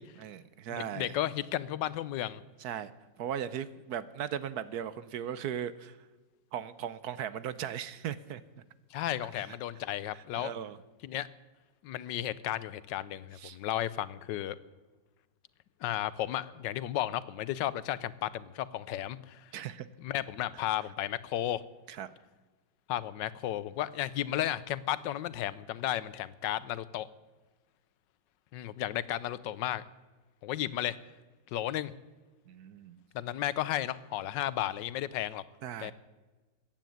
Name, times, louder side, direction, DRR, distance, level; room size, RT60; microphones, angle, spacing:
voice 1, 0.2-1.2 2.6-2.9 3.2-6.0 6.5-8.4 9.4-9.5 10.1-10.8 13.3-13.6 19.5-19.9 21.9-22.1 32.5-33.0 35.6-35.9, right 9 dB, 70° right, 15 dB, 1.1 m, -38 dB
voice 2, 0.7-2.4 8.9-10.5 11.0-11.3 11.8-14.6 15.8-19.5 20.0-21.6 22.9-27.1 28.5-29.8 30.4-31.0 31.5-31.9 33.1-35.4 35.8-35.9, left 12 dB, 80° left, 18 dB, 1.4 m, -34 dB
15.0 x 9.2 x 9.2 m, 1.3 s
omnidirectional pair, 1.9 m